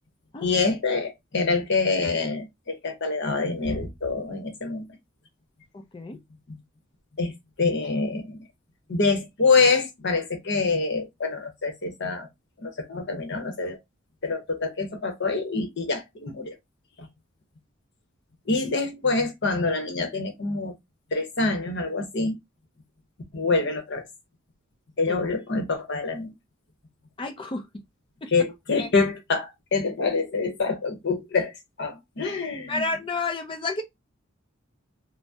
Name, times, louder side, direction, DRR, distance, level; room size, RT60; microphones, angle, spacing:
voice 1, 0.4-4.9 6.5-6.6 7.2-7.3 7.6-8.4 8.9-12.3 12.6-13.8 14.2-16.6 17.0-17.1 18.5-20.7 21.1-22.3 23.3-24.0 25.0-26.3 28.3-31.5 31.8-32.8, left 4 dB, 55° left, 0.8 m, -26 dB
voice 2, 5.7-6.2 25.1-25.2 27.2-27.7 28.2-28.3 28.8-28.9 32.7-33.8, left 3 dB, 25° left, 0.4 m, -30 dB
2.6 x 2.0 x 3.3 m
head